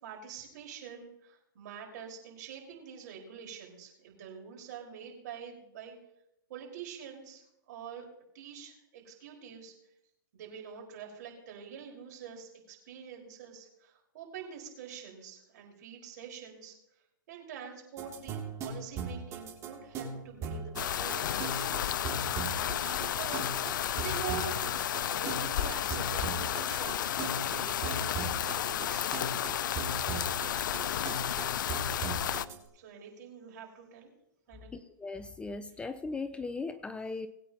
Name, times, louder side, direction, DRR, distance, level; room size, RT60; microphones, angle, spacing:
voice 1, 0.0-6.0 6.5-8.1 8.3-9.7 10.3-16.7 17.3-24.6 25.1-29.1 32.7-34.1 34.5-34.8, right 7 dB, 60° right, 0 dB, 5.0 m, -46 dB
sound 1, 18.0-32.6, right 4 dB, 25° right, 2.5 m, -39 dB
sound 2, 20.8-32.5, left 11 dB, 70° left, 0.5 m, -32 dB
voice 2, 34.7-37.3, left 3 dB, 10° left, 11 dB, 0.5 m, -38 dB
21.0 x 9.2 x 2.9 m, 0.83 s
hypercardioid pair, 130°, 11 cm